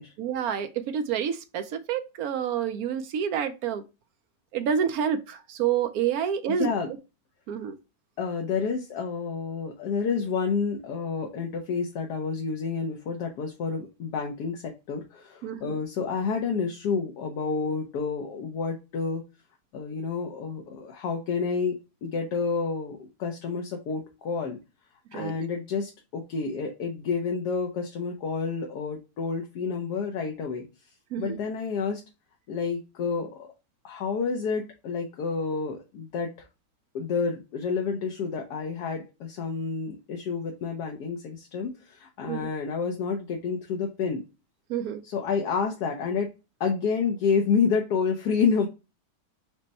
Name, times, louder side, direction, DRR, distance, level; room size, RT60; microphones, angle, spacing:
voice 1, 0.2-3.8 4.5-6.7 7.5-7.7 15.4-15.8 25.1-25.4 31.1-31.4 42.3-42.5 44.7-45.0, right 8 dB, 70° right, 1.0 m, -28 dB
voice 2, 6.5-6.9 8.2-19.2 19.7-24.6 25.1-30.9 31.2-32.0 32.5-33.4 33.8-36.5 36.9-44.2 45.0-46.3 46.6-48.7, left 5 dB, 75° left, 1.3 m, -29 dB
5.2 x 2.1 x 4.0 m
omnidirectional pair, 1.8 m